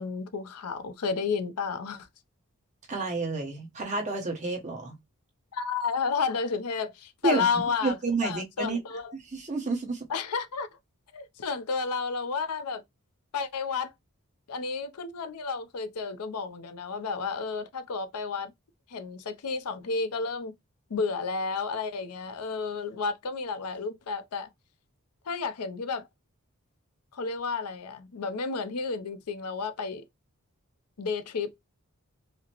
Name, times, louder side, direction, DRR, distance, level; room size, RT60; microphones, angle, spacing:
voice 1, 0.0-2.1 5.5-8.0 8.2-9.1 10.1-10.7 11.1-12.8 13.3-13.9 14.5-18.5 18.9-20.5 20.9-24.5 25.3-26.1 27.1-30.0 31.0-31.6, left 4 dB, 90° left, 0.6 m, -31 dB
voice 2, 2.9-5.0 7.2-7.5 7.8-8.8 9.3-10.1, right 3 dB, 30° right, 1.0 m, -30 dB
4.9 x 2.0 x 2.9 m
head